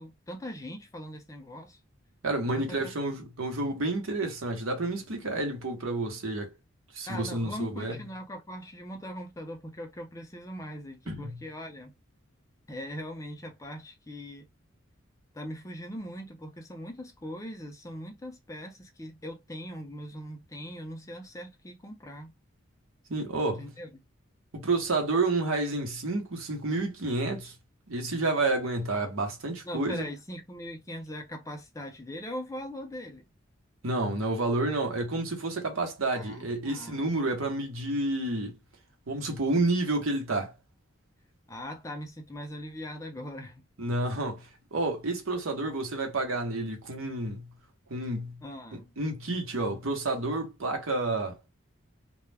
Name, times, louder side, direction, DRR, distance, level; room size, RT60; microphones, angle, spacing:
voice 1, 0.0-1.8 2.5-2.9 7.1-11.9 12.7-14.4 15.3-22.3 23.5-23.9 29.6-33.3 36.1-37.0 41.5-43.6 48.4-48.9, equal, 15° left, 0.4 m, -40 dB
voice 2, 2.2-6.5 6.9-8.0 11.1-11.4 23.1-23.7 24.5-27.5 27.9-30.1 33.8-38.6 39.1-40.5 43.8-47.5 47.9-48.4 48.7-51.4, right 2 dB, 80° right, 0.8 m, -30 dB
2.3 x 2.0 x 3.2 m
head